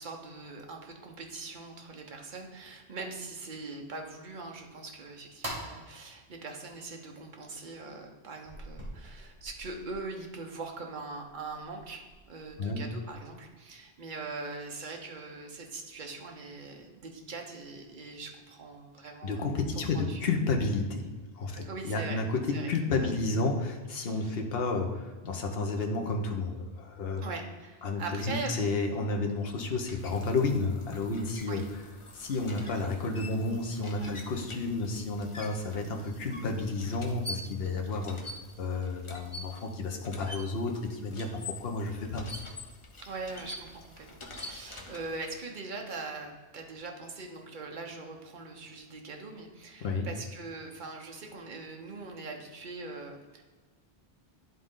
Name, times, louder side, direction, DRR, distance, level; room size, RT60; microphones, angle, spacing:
voice 1, 0.0-19.5 19.8-20.3 21.6-22.2 22.5-22.7 23.0-23.1 24.0-24.3 27.2-28.5 31.5-31.6 43.0-53.4, right 3 dB, 50° right, 2 dB, 1.1 m, -42 dB
sound 1, 3.3-3.7 4.1-4.2 4.6-4.7 5.2-6.3 6.8-6.9 7.4-7.5 7.9-8.0 8.4-13.5, right 1 dB, 30° right, 1.9 m, -46 dB
voice 2, 19.2-21.1 21.3-22.4 22.7-27.2 27.8-31.6 32.1-42.3 49.8-50.1, left 3 dB, 65° left, 3 dB, 1.1 m, -31 dB
sound 2, 29.2-45.4, left 2 dB, 30° left, 0.8 m, -46 dB
10.5 x 3.8 x 3.7 m, 1.4 s
omnidirectional pair, 1.1 m